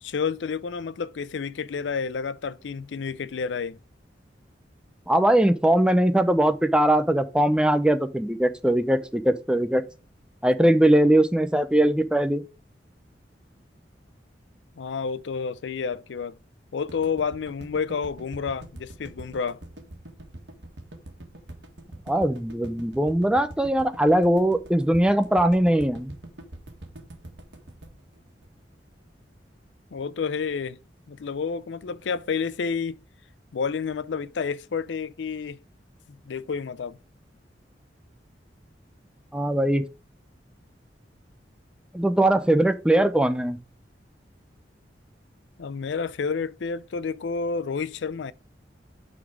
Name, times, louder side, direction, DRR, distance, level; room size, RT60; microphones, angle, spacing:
voice 1, 0.0-3.8 14.8-16.4 16.7-19.6 29.9-30.8 31.1-33.0 33.5-35.6 36.1-37.0 45.6-48.3, left 5 dB, 75° left, 0.5 m, -30 dB
voice 2, 5.1-9.8 10.4-12.4 22.1-26.1 39.3-39.8 41.9-43.6, right 1 dB, 5° right, 0.6 m, -21 dB
sound 1, 16.9-29.1, right 1 dB, 70° right, 1.7 m, -43 dB
9.0 x 4.1 x 5.0 m
head